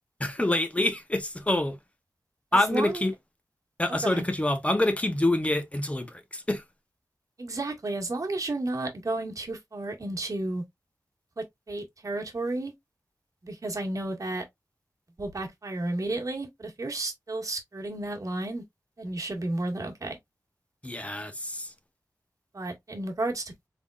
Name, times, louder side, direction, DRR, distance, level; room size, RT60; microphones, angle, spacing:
voice 1, 0.2-1.8 2.5-3.1 3.8-6.6 20.8-21.7, left 1 dB, 20° left, 0.8 m, -26 dB
voice 2, 2.5-3.1 3.9-4.2 7.4-10.6 11.4-12.7 13.4-14.4 15.2-18.6 19.0-20.2 22.5-23.4, right 2 dB, 60° right, 1.5 m, -32 dB
3.6 x 3.6 x 2.3 m
wide cardioid pair, 70°, 7 cm